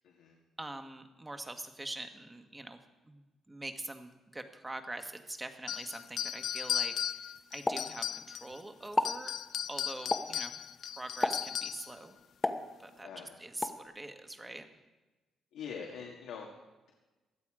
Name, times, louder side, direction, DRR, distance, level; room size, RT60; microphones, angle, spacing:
voice 1, 0.0-0.4 10.1-10.2 13.0-13.3 15.5-16.5, left 6 dB, 85° left, 0 dB, 1.9 m, -44 dB
voice 2, 0.6-2.8 3.0-9.3 9.7-10.5 10.8-12.1 12.8-13.1 13.4-14.7, right 2 dB, 15° right, 7 dB, 1.6 m, -44 dB
sound 1, 5.7-8.6 8.9-11.9, left 9 dB, 65° left, 0.4 m, -36 dB
Explosion, 7.7-8.5 8.8-9.3 10.1-10.5 11.2-11.6 12.4-13.1 13.6-13.9, left 2 dB, 20° left, 1.1 m, -33 dB
16.5 x 11.5 x 5.0 m, 1.2 s
cardioid pair, 90°, 0 cm